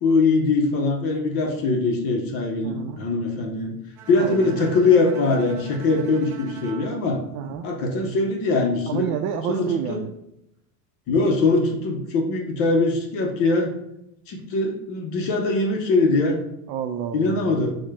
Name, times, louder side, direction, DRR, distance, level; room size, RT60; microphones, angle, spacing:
voice 1, 0.0-3.7 4.1-7.2 7.6-9.1 9.5-10.0 11.1-13.7 14.3-16.4 17.1-17.8, left 3 dB, 30° left, 1 dB, 0.5 m, -22 dB
voice 2, 2.6-3.0 4.2-4.6 7.3-7.7 8.9-10.1 16.7-17.6, right 8 dB, 80° right, 5 dB, 0.6 m, -29 dB
Bowed string instrument, 4.0-8.1, right 6 dB, 35° right, 0.5 m, -42 dB
4.6 x 2.1 x 4.6 m, 0.81 s
supercardioid pair, 160°, 48 cm